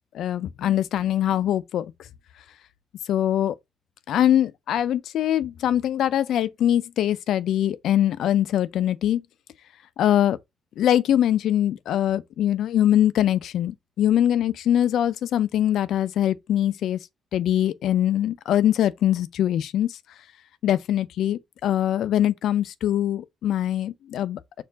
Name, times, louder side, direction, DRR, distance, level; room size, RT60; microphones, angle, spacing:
voice 1, 0.1-1.9 3.1-3.5 4.1-9.2 10.0-10.4 10.8-17.0 17.3-20.0 20.6-24.6, left 11 dB, 75° left, 0.4 m, -22 dB
4.4 x 2.4 x 3.9 m
cardioid pair, 90°, 0 cm